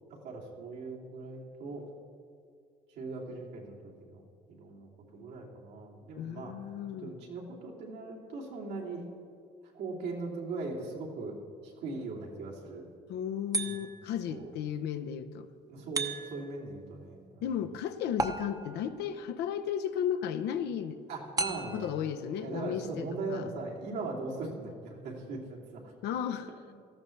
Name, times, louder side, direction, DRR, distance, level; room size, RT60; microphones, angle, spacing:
voice 1, 0.1-1.9 2.9-4.2 4.5-6.5 7.0-9.0 9.7-11.3 11.6-12.9 13.6-13.8 14.3-14.5 15.7-17.4 21.1-21.9 22.4-25.9, right 3 dB, 85° right, -3 dB, 2.9 m, -39 dB
voice 2, 6.2-7.1 13.1-15.5 17.4-21.0 21.7-23.4 26.0-26.7, left 9 dB, 80° left, 9 dB, 0.7 m, -34 dB
sound 1, 13.5-14.2 16.0-16.6 18.2-18.9 21.4-22.0, right 3 dB, 20° right, 0.8 m, -34 dB
18.0 x 14.0 x 3.3 m, 2.3 s
cardioid pair, 110°, 17 cm